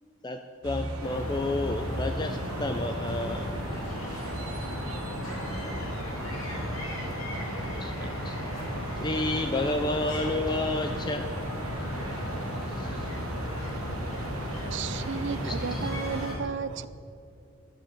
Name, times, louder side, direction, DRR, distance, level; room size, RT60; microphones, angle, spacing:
voice 1, 0.2-3.5 7.7-8.4 9.0-11.3 12.0-12.3 12.7-13.1 13.5-13.8 14.2-14.3 14.6-14.7 15.5-15.9, left 2 dB, 20° left, 0.4 m, -31 dB
sound 1, 0.6-16.3, right 1 dB, 90° right, 1.2 m, -39 dB
sound 2, 1.0-16.4, equal, 75° left, 3.2 m, -35 dB
voice 2, 4.2-6.9, left 1 dB, 55° left, 3.1 m, -47 dB
voice 3, 14.7-16.9, right 6 dB, 55° right, 0.4 m, -33 dB
12.0 x 7.4 x 8.9 m
head